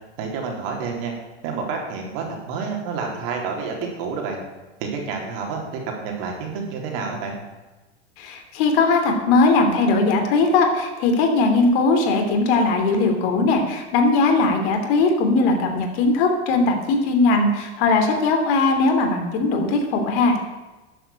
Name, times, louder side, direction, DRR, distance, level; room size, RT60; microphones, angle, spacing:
voice 1, 0.2-1.1 1.4-4.4 4.8-7.3, right 5 dB, 55° right, 1 dB, 4.1 m, -29 dB
voice 2, 8.2-20.4, left 3 dB, 55° left, 4 dB, 3.1 m, -19 dB
11.5 x 7.8 x 9.0 m, 1.2 s
supercardioid pair, 130°, 33 cm